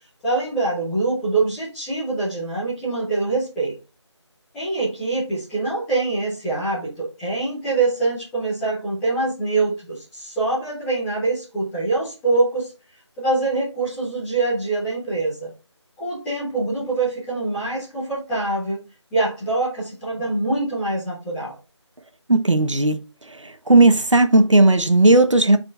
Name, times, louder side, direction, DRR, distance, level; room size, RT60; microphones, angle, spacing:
voice 1, 0.2-3.8 4.5-12.7 13.2-15.5 16.0-18.8 19.1-21.5, right 3 dB, ahead, 0.5 m, -24 dB
voice 2, 22.3-23.0 23.4-25.6, right 2 dB, 90° right, 1.2 m, -15 dB
6.8 x 4.4 x 3.4 m
figure-of-eight pair, 165°, 15 cm